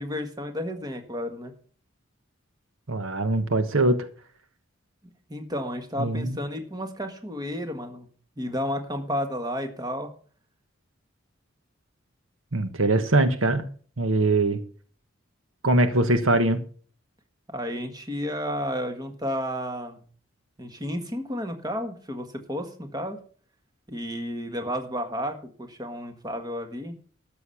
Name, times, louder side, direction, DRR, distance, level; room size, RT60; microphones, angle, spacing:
voice 1, 0.0-1.5 5.3-8.1 8.4-10.1 17.5-20.0 20.6-23.2 23.9-26.9, equal, 20° right, 6 dB, 1.5 m, -32 dB
voice 2, 2.9-4.1 6.0-6.4 12.5-13.6 14.0-14.6 15.6-16.6, right 2 dB, 75° right, 9 dB, 1.3 m, -22 dB
13.0 x 6.9 x 5.7 m, 0.43 s
head